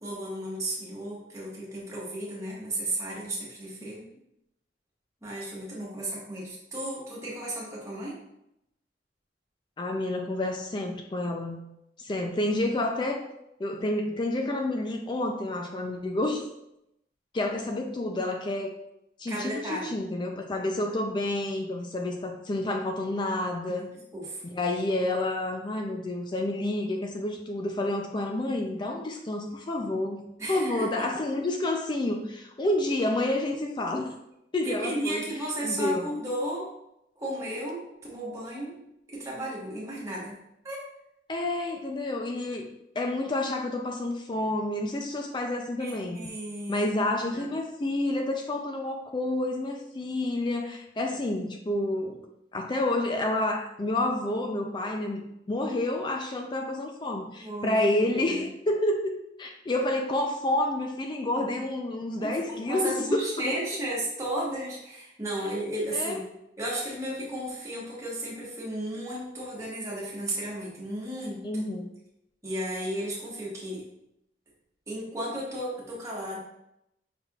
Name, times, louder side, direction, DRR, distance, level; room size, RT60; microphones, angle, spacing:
voice 1, 0.0-4.0 5.2-8.2 19.3-19.9 23.7-23.9 24.1-24.4 30.4-30.9 34.6-36.7 37.2-38.8 39.1-40.8 45.8-46.9 47.3-47.5 57.4-58.5 62.2-66.2 66.6-71.6 72.4-73.8 74.9-76.4, right 1 dB, 15° right, -6 dB, 1.4 m, -34 dB
voice 2, 9.8-11.6 12.0-13.2 13.6-16.5 17.3-18.7 19.2-23.9 24.4-34.1 34.5-35.3 35.6-36.1 41.3-42.7 43.0-46.3 46.7-52.2 52.5-63.6 65.9-66.2 71.4-71.9, left 1 dB, 25° left, 3 dB, 0.4 m, -29 dB
5.6 x 3.5 x 2.4 m, 0.81 s
head